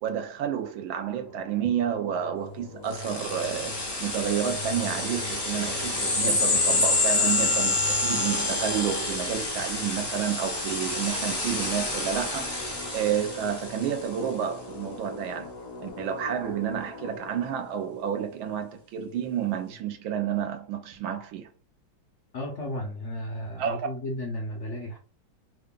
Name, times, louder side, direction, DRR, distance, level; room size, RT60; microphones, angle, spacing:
voice 1, 0.0-12.6 12.9-15.5 15.8-21.5 23.6-23.9, right 9 dB, 75° right, 1.4 m, -30 dB
sound 1, 1.1-19.2, left 3 dB, 60° left, 1.2 m, -42 dB
sound 2, 2.9-14.0, left 2 dB, 30° left, 0.7 m, -28 dB
voice 2, 22.3-25.0, left 1 dB, 75° left, 0.6 m, -34 dB
3.8 x 2.3 x 3.5 m
omnidirectional pair, 2.3 m